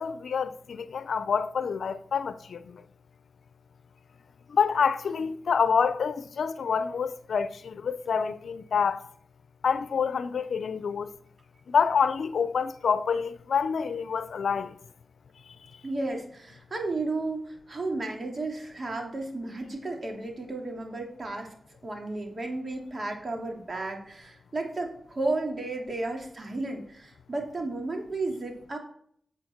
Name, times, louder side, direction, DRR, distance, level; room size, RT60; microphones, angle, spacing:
voice 1, 0.0-2.8 4.5-9.0 9.6-11.1 11.7-14.8, left 6 dB, 85° left, 0.5 m, -27 dB
voice 2, 15.8-21.5 21.8-28.8, right 2 dB, 50° right, 2.9 m, -33 dB
8.8 x 8.7 x 4.5 m
cardioid pair, 45°, 0 cm